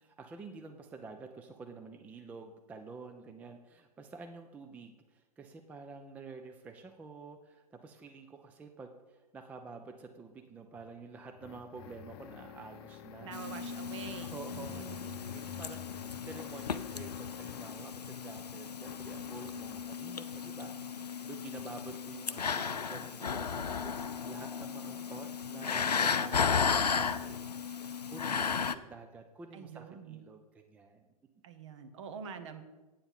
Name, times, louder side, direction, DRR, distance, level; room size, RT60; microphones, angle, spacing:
voice 1, 0.0-13.4 14.2-31.0, right 4 dB, 5° right, 6 dB, 0.4 m, -49 dB
sound 1, 10.7-17.9 18.8-19.9, left 9 dB, 40° left, 0.7 m, -49 dB
voice 2, 13.2-15.0 29.5-30.2 31.4-32.6, right 6 dB, 50° right, 10 dB, 1.0 m, -46 dB
sound 2, 13.3-28.7, left 6 dB, 80° left, 0.5 m, -35 dB
8.7 x 7.1 x 5.4 m, 1.2 s
figure-of-eight pair, 110°, 20 cm